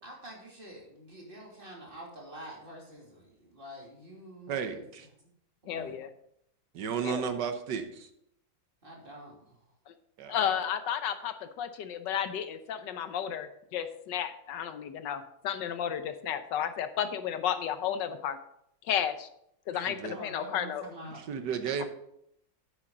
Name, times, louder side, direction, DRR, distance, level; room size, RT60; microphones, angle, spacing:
voice 1, 0.0-5.1 5.6-6.0 8.8-9.6 20.1-21.3, right 1 dB, 25° right, -2 dB, 2.8 m, -47 dB
voice 2, 4.5-5.1 6.7-8.1 10.2-10.6 19.7-20.2 21.3-21.9, right 7 dB, 65° right, 8 dB, 1.6 m, -33 dB
voice 3, 5.7-6.1 7.0-7.3 9.9-10.0 10.3-18.4 18.8-19.3 19.7-20.8 21.8-21.9, left 9 dB, 70° left, 10 dB, 1.4 m, -33 dB
9.7 x 8.7 x 3.8 m, 0.75 s
omnidirectional pair, 2.1 m